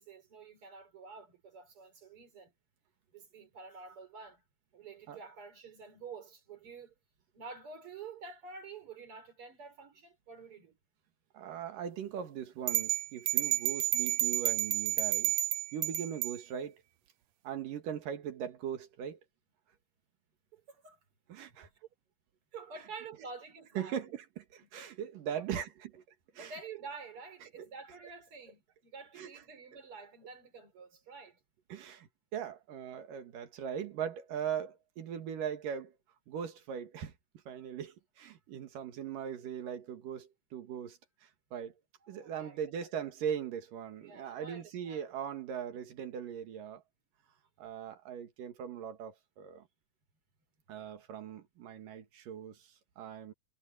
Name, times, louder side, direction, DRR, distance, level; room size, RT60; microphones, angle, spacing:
voice 1, 0.0-2.5 3.1-4.4 4.7-6.9 7.3-10.8 20.5-21.0 22.5-24.0 25.3-25.6 26.3-31.4 42.0-42.6 44.0-45.0, right 4 dB, 40° right, 4.2 m, -49 dB
voice 2, 11.3-15.3 15.7-16.8 17.4-19.2 21.3-21.7 23.8-25.7 26.3-26.5 27.6-27.7 29.2-29.3 31.7-35.9 36.3-37.1 37.5-41.7 42.1-46.8 47.6-49.7 50.7-53.3, right 8 dB, 70° right, 3.4 m, -40 dB
sound 1, 12.7-16.4, right 12 dB, 90° right, 1.5 m, -30 dB
omnidirectional pair, 4.1 m